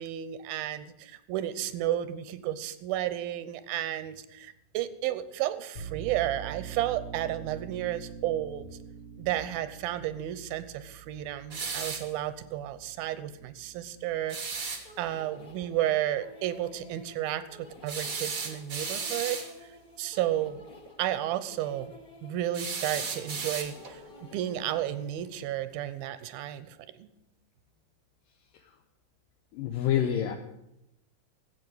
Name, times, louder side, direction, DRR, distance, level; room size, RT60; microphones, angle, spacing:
voice 1, 0.0-8.7 9.2-14.7 15.0-19.4 20.0-20.6 21.0-21.9 22.2-24.0 24.3-27.1, right 12 dB, 85° right, 14 dB, 2.7 m, -32 dB
sound 1, 5.8-17.1, right 7 dB, 50° left, 3.7 m, -46 dB
sound 2, 11.5-12.1 14.3-14.8 17.9-19.5 22.5-24.0, right 5 dB, 55° right, 0.9 m, -35 dB
sound 3, 14.8-25.4, left 2 dB, 35° left, 1.8 m, -52 dB
voice 2, 29.5-30.3, left 10 dB, 75° left, 4 dB, 2.5 m, -27 dB
13.0 x 8.3 x 9.0 m, 0.84 s
omnidirectional pair, 4.2 m